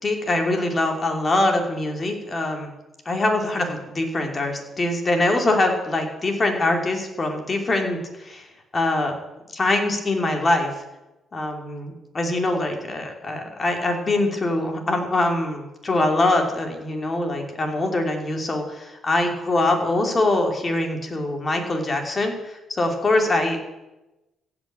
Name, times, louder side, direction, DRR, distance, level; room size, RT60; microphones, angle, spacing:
voice 1, 0.0-2.7 3.0-8.5 8.7-9.1 9.5-10.8 11.3-23.6, left 2 dB, 35° left, 3 dB, 2.9 m, -23 dB
15.5 x 6.0 x 8.8 m, 1.0 s
cardioid pair, 90°, 0 cm